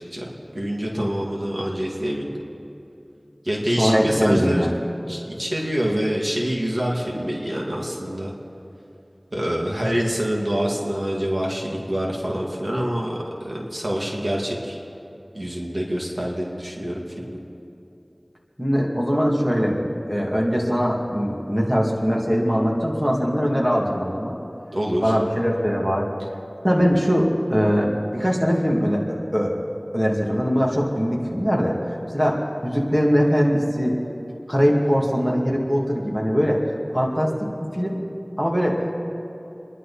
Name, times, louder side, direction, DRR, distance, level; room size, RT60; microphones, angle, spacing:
voice 1, 0.1-2.4 3.4-4.7 5.1-8.3 9.3-14.8 15.3-17.4 24.7-25.1, equal, 50° right, -3 dB, 2.4 m, -26 dB
voice 2, 0.9-1.3 3.8-4.7 18.6-24.4 25.0-26.1 26.6-29.6 29.9-31.8 32.1-34.0 34.5-37.5 37.7-38.0 38.4-38.8, equal, 10° right, -3 dB, 2.6 m, -21 dB
29.5 x 11.0 x 4.3 m, 2.8 s
wide cardioid pair, 45°, 0 cm